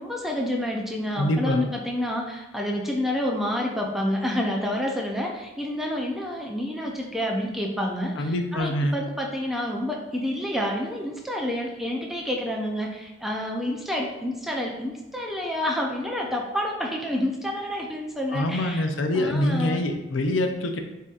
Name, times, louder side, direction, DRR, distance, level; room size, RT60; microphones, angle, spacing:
voice 1, 0.0-18.9 19.1-19.8, left 1 dB, ahead, -1 dB, 0.5 m, -29 dB
voice 2, 1.2-1.7 8.2-9.0 18.3-20.8, left 1 dB, 85° left, 5 dB, 0.5 m, -25 dB
7.3 x 2.7 x 2.5 m, 1.0 s
head